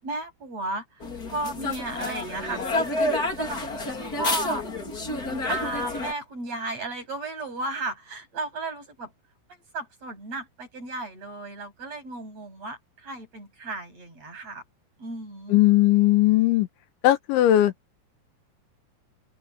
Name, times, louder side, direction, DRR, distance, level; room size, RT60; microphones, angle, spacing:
voice 1, 0.0-3.6 4.1-4.6 5.2-9.1 9.5-14.6 15.0-15.6, right 2 dB, 30° right, 8.7 m, -34 dB
sound 1, 1.0-6.1, left 2 dB, 25° left, 2.9 m, -29 dB
voice 2, 15.5-16.7 17.0-17.7, left 15 dB, 70° left, 3.5 m, -18 dB
open air
omnidirectional pair, 5.8 m